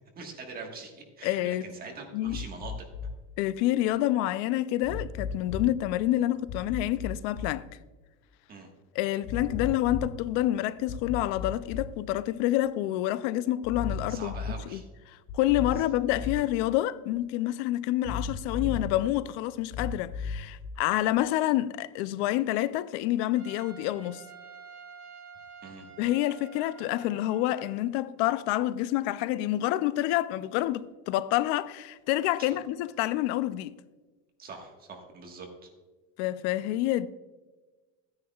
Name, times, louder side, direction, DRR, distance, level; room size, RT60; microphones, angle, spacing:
voice 1, 0.1-2.7 8.5-8.7 14.0-14.9 15.8-16.0 25.6-25.9 32.4-32.6 34.4-35.7, right 4 dB, 25° right, 1.4 m, -43 dB
voice 2, 1.2-1.7 2.1-2.4 3.4-7.6 8.9-14.4 14.7-14.8 15.1-24.2 26.0-33.7 36.2-37.1, left 14 dB, 90° left, 0.5 m, -28 dB
sound 1, 2.2-3.1 4.8-5.8 6.5-7.5 9.2-10.1 10.9-12.1 13.6-14.6 15.3-16.5 18.0-19.0 19.7-20.7, left 5 dB, 40° left, 0.9 m, -36 dB
Trumpet, 23.3-27.9, right 6 dB, 55° right, 2.9 m, -49 dB
13.0 x 9.6 x 2.3 m
cardioid pair, 170°, 34 cm